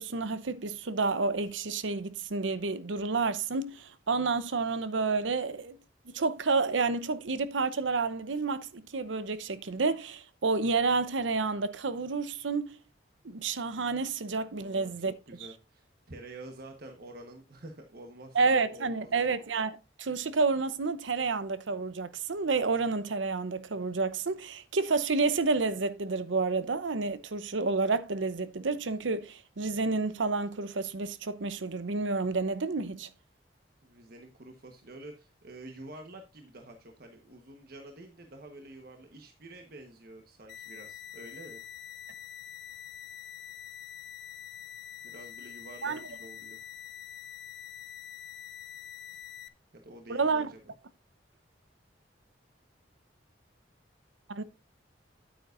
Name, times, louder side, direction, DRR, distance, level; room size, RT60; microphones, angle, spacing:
voice 1, 0.0-5.8 6.1-12.7 13.2-15.1 18.3-33.1 45.8-46.0 50.1-50.5 54.3-54.4, right 4 dB, 90° right, 0.8 m, -30 dB
voice 2, 14.5-14.9 15.3-19.3 33.8-41.6 45.0-46.6 49.7-50.7, right 1 dB, 55° right, 1.2 m, -48 dB
sound 1, 40.5-49.5, left 10 dB, 65° left, 0.7 m, -45 dB
9.4 x 8.8 x 2.5 m
head